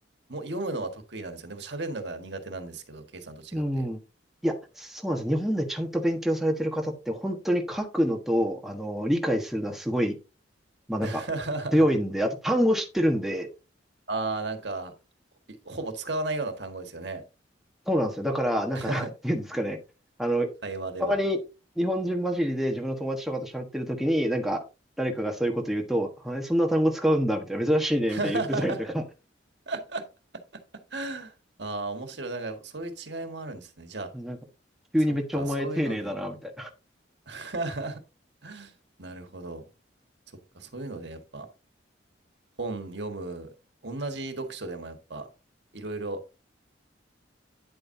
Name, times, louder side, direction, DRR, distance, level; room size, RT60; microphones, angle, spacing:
voice 1, 0.3-3.8 11.0-11.9 14.1-14.9 15.6-17.2 18.7-19.1 20.6-21.2 28.1-28.8 29.7-30.1 30.9-31.3 31.6-34.1 35.3-36.1 37.3-38.0 38.4-38.7 39.0-39.6 40.5-41.5 42.6-43.5 43.8-45.3 45.7-46.2, right 2 dB, 60° right, 1.7 m, -34 dB
voice 2, 3.5-4.0 4.4-10.2 10.9-11.2 11.7-13.5 17.9-19.8 20.2-20.5 21.0-21.4 21.8-24.6 25.0-29.0 34.1-34.4 34.9-36.7, equal, ahead, 1.3 m, -26 dB
10.0 x 7.6 x 2.7 m
head